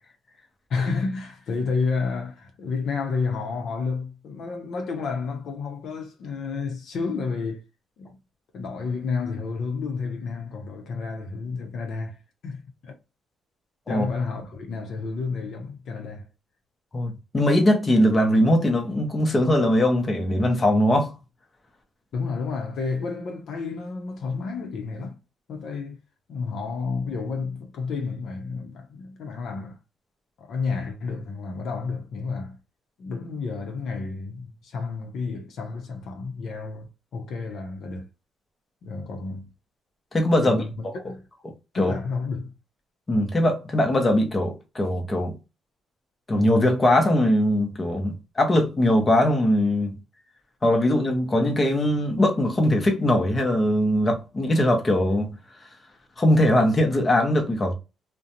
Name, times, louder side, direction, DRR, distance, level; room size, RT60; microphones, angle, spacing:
voice 1, 0.7-7.6 8.0-8.2 8.5-12.2 12.4-12.9 13.9-16.3 22.1-25.2 25.5-26.0 26.3-29.8 30.4-32.6 33.0-38.1 38.8-39.5 40.4-40.7 41.0-41.3 41.7-42.5, left 4 dB, 70° left, 0.7 m, -30 dB
voice 2, 16.9-21.1 40.1-40.6 41.7-41.9 43.1-45.3 46.3-49.9 50.6-55.4 56.2-57.7, left 1 dB, 30° left, 0.7 m, -21 dB
2.5 x 2.2 x 2.8 m
cardioid pair, 90°, 0 cm